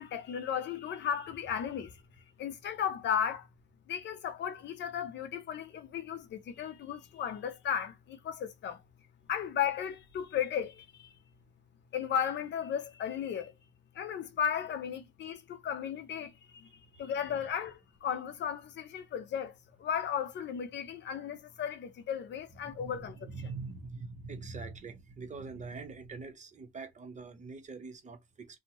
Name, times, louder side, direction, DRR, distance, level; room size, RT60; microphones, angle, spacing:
voice 1, 0.0-2.0 2.4-3.5 3.9-8.8 9.3-11.1 11.9-13.5 13.9-16.7 17.0-19.5 19.8-23.5, left 8 dB, 65° left, 0.6 m, -35 dB
voice 2, 22.6-28.6, right 4 dB, 35° right, 0.8 m, -43 dB
2.6 x 2.1 x 2.9 m
cardioid pair, 90°, 20 cm